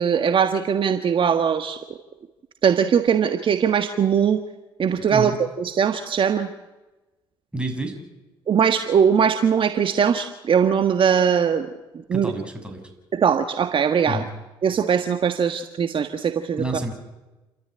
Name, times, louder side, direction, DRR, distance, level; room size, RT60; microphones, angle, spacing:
voice 1, 0.0-1.8 2.6-4.4 4.8-5.3 5.6-6.5 8.5-11.7 12.1-12.3 13.1-14.2 14.6-16.6, right 7 dB, 50° right, 8 dB, 1.5 m, -20 dB
voice 2, 7.5-7.9 12.1-12.8 14.1-14.2 16.6-16.9, right 1 dB, 10° right, 5 dB, 6.6 m, -28 dB
29.0 x 13.0 x 9.9 m, 1.1 s
supercardioid pair, 65°, 11 cm